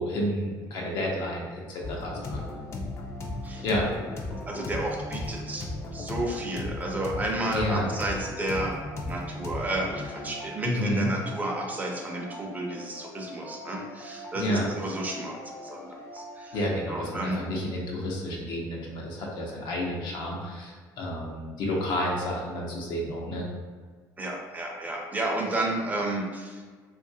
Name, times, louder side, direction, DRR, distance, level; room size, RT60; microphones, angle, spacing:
voice 1, 0.0-2.4 3.6-3.8 7.5-7.9 10.6-11.1 14.4-14.6 16.5-23.4, left 1 dB, 75° left, -2 dB, 0.7 m, -30 dB
sound 1, 1.8-16.7, left 2 dB, 35° left, 0.5 m, -38 dB
voice 2, 4.5-8.8 9.1-16.6 16.9-17.4 24.2-26.6, right 2 dB, 20° right, 0 dB, 0.5 m, -32 dB
3.0 x 2.4 x 2.7 m, 1.5 s
cardioid pair, 110°, 8 cm